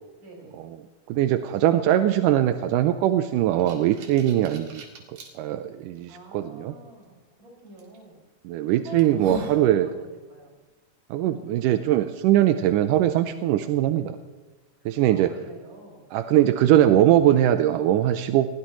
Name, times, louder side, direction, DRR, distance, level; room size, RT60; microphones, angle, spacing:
voice 1, 0.2-0.7 6.1-8.2 8.7-10.6 11.1-11.5 14.8-16.1, right 1 dB, 35° right, -3 dB, 6.3 m, -46 dB
voice 2, 1.1-4.9 5.4-6.7 8.5-9.9 11.1-14.2 14.9-15.3 16.1-18.5, right 12 dB, 85° right, 9 dB, 2.2 m, -21 dB
sound 1, 3.2-5.3 6.0-6.1 7.8-8.0 8.5-8.6 9.0-9.6, right 1 dB, 70° right, 3.4 m, -39 dB
21.0 x 16.5 x 3.1 m, 1.2 s
omnidirectional pair, 3.8 m